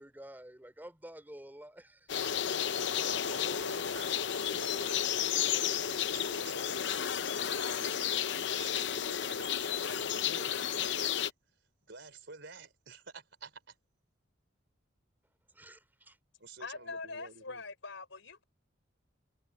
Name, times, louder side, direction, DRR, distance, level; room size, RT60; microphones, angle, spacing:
voice 1, 0.0-2.6 15.5-16.2, right 1 dB, 10° right, 3.2 m, -51 dB
sound 1, 2.1-11.3, left 9 dB, 65° left, 0.7 m, -32 dB
voice 2, 2.7-5.0 5.3-8.0 8.5-11.3 11.9-13.7 16.4-17.6, right 4 dB, 65° right, 4.7 m, -50 dB
voice 3, 16.6-18.4, left 3 dB, 85° left, 4.1 m, -43 dB
head